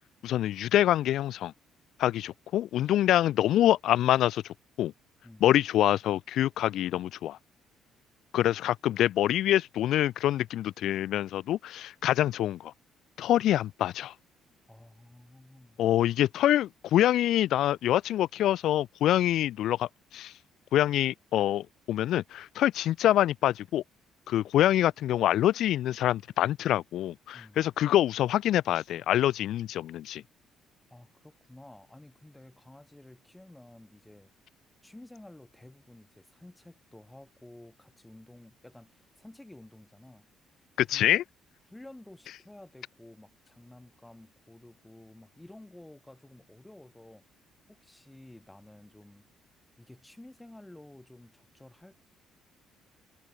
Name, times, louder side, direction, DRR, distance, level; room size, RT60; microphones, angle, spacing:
voice 1, 0.2-1.5 2.0-4.9 5.4-7.4 8.3-12.7 13.2-14.1 15.8-20.3 20.7-23.8 24.3-30.2 40.8-41.2, left 12 dB, 65° left, 0.4 m, -25 dB
voice 2, 14.7-15.8 27.3-27.6 30.9-34.3 34.8-40.2 40.9-41.2 41.7-47.2 47.7-49.3 49.8-51.9, left 1 dB, 5° left, 2.5 m, -52 dB
cardioid pair, 135°, 0 cm